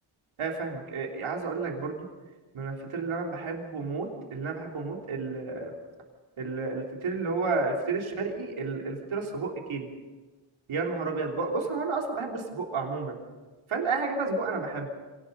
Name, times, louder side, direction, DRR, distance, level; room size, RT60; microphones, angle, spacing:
voice 1, 0.4-2.1 2.5-5.7 6.4-9.9 10.7-13.2 13.7-14.9, right 4 dB, 75° right, 0 dB, 3.4 m, -31 dB
26.0 x 18.0 x 5.5 m, 1.3 s
wide cardioid pair, 115°, 49 cm